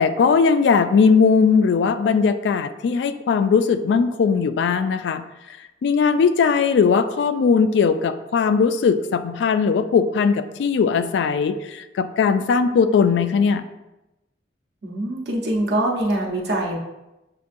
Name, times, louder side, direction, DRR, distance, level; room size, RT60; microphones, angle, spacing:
voice 1, 0.0-5.2 5.8-13.6, left 5 dB, 80° left, 11 dB, 0.3 m, -19 dB
voice 2, 14.8-16.8, right 1 dB, 65° right, -1 dB, 0.8 m, -23 dB
6.7 x 2.6 x 2.5 m, 0.97 s
head